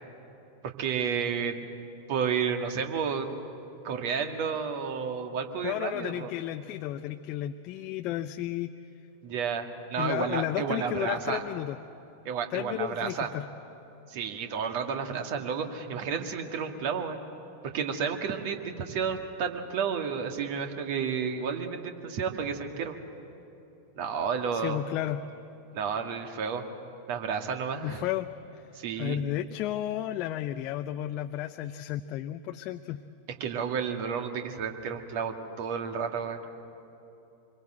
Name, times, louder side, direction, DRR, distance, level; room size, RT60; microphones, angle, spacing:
voice 1, 0.8-1.7 2.1-3.3 3.8-6.3 9.2-11.4 12.2-13.3 14.1-17.2 17.6-23.0 24.0-24.8 25.7-26.7 27.1-28.0 28.8-29.2 33.4-36.4, right 6 dB, 50° right, 5 dB, 2.1 m, -31 dB
voice 2, 5.6-8.7 10.0-11.8 12.5-13.5 24.5-25.3 27.8-28.3 29.0-33.0, left 13 dB, 40° left, 7 dB, 0.6 m, -33 dB
26.0 x 22.5 x 7.9 m, 3.0 s
figure-of-eight pair, 90°, 0 cm